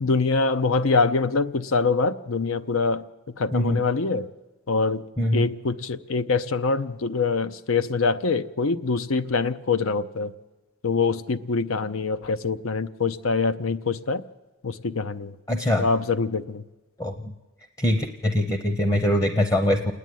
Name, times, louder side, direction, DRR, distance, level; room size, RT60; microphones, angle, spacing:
voice 1, 0.0-3.0 3.4-4.3 4.7-5.0 5.3-10.3 10.8-14.2 14.6-15.3 15.8-16.6, left 4 dB, 85° left, 14 dB, 0.7 m, -24 dB
voice 2, 3.5-3.8 5.2-5.5 15.5-15.9 17.0-17.3 17.8-19.9, equal, 15° left, 7 dB, 0.7 m, -23 dB
28.0 x 10.0 x 9.3 m, 1.2 s
head